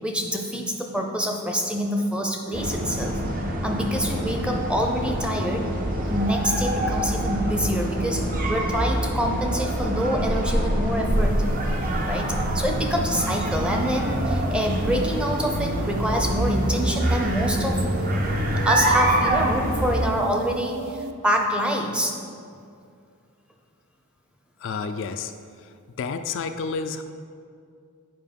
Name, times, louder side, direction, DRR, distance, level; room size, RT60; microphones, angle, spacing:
voice 1, 0.0-3.2 3.6-5.7 6.1-11.4 12.0-17.8 18.3-22.2, equal, 5° right, 2 dB, 0.6 m, -26 dB
sound 1, 2.5-20.1, right 1 dB, 40° right, 0.7 m, -25 dB
sound 2, 11.1-21.1, right 3 dB, 70° right, 0.4 m, -36 dB
voice 2, 24.6-25.3 25.6-27.0, left 5 dB, 55° left, 8 dB, 0.3 m, -30 dB
7.8 x 5.0 x 5.2 m, 2.3 s
head